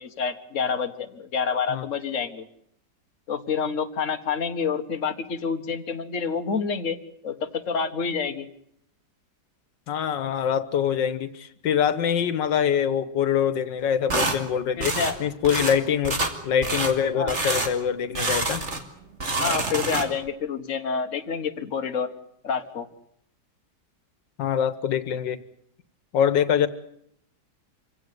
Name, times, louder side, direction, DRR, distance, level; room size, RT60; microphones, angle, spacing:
voice 1, 0.0-2.5 3.3-8.5 14.8-15.2 17.1-17.3 19.4-22.1 22.4-22.9, left 6 dB, 45° left, 6 dB, 1.8 m, -28 dB
voice 2, 9.9-18.6 24.4-25.4 26.1-26.7, left 8 dB, 90° left, 13 dB, 1.9 m, -24 dB
sound 1, 14.1-14.4 14.8-15.2 15.4-15.8 16.0-16.3 16.6-16.9 17.3-17.7 18.1-18.9 19.1-20.3, right 2 dB, 40° right, 2.7 m, -27 dB
26.0 x 17.0 x 9.5 m, 0.72 s
omnidirectional pair, 1.9 m